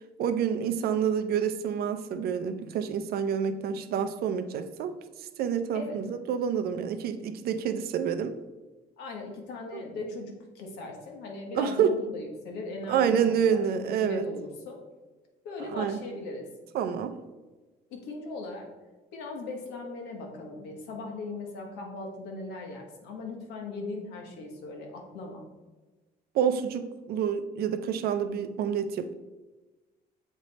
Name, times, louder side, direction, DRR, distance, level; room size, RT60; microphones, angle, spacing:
voice 1, 0.2-4.9 5.4-8.3 9.7-9.8 11.5-12.0 12.9-14.2 15.7-16.0 16.7-17.2 26.3-29.1, right 7 dB, 65° right, 10 dB, 0.5 m, -28 dB
voice 2, 9.0-14.8 15.4-16.5 17.9-18.7 19.1-25.5, left 2 dB, 85° left, 1 dB, 1.3 m, -38 dB
7.2 x 3.3 x 4.1 m, 1.2 s
cardioid pair, 110°, 17 cm